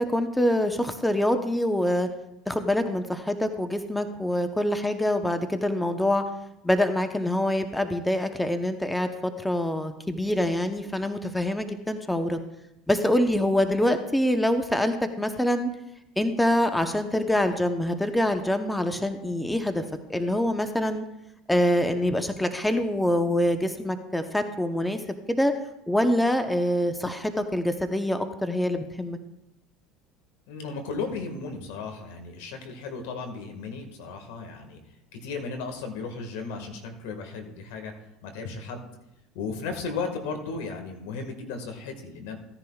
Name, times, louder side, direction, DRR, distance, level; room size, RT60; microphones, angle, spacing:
voice 1, 0.0-2.1 2.5-6.2 6.6-12.4 12.9-15.7 16.2-19.8 20.1-21.0 21.5-25.0 25.3-25.5 25.9-29.2, left 1 dB, 5° left, 7 dB, 0.9 m, -25 dB
voice 2, 30.5-34.8 35.1-37.9 38.2-38.9 39.4-42.4, left 4 dB, 80° left, 5 dB, 1.7 m, -35 dB
16.0 x 10.5 x 2.4 m, 0.88 s
supercardioid pair, 95°, 0 cm